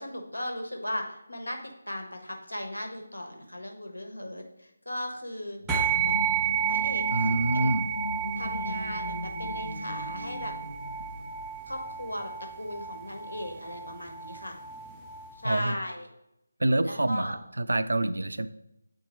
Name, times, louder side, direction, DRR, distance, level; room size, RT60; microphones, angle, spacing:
voice 1, 0.0-6.1 6.7-7.6 8.4-10.5 11.7-14.6 15.3-16.1 16.8-17.4, left 1 dB, 85° left, 3 dB, 1.4 m, -37 dB
sound 1, 5.6-12.1, left 2 dB, 55° left, 0.9 m, -38 dB
sound 2, 5.7-15.4, right 8 dB, 10° right, 0.5 m, -31 dB
voice 2, 7.1-7.9 15.4-15.7 16.6-18.5, right 2 dB, 70° right, 12 dB, 0.4 m, -26 dB
8.2 x 4.4 x 3.1 m, 0.85 s
figure-of-eight pair, 155°, 0 cm